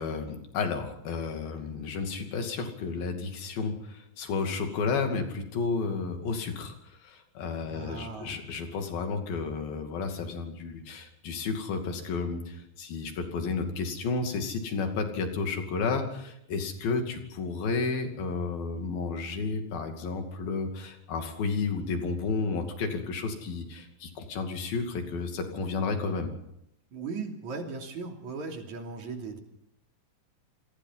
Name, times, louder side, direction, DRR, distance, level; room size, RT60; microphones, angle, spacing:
voice 1, 0.0-26.3, left 4 dB, 85° left, 5 dB, 4.4 m, -32 dB
voice 2, 7.7-8.4 26.9-29.4, right 4 dB, 55° right, 2 dB, 4.2 m, -37 dB
28.5 x 20.5 x 5.7 m, 0.79 s
omnidirectional pair, 4.1 m